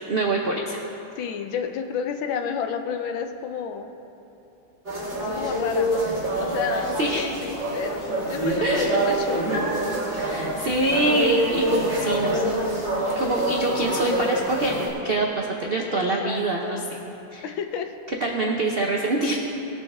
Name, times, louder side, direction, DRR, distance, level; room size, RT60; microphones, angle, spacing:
voice 1, 0.1-0.8 6.7-7.3 8.6-8.9 10.1-12.5 13.2-16.8 17.3-17.5 18.2-19.4, right 2 dB, 65° right, 0 dB, 0.5 m, -25 dB
voice 2, 1.2-3.9 5.3-6.1 6.3-9.6 15.9-16.9 17.4-17.9, left 7 dB, 85° left, 6 dB, 1.5 m, -31 dB
sound 1, 4.9-14.9, right 1 dB, 35° right, 2.5 m, -26 dB
19.5 x 7.1 x 3.5 m, 2.9 s
omnidirectional pair, 2.1 m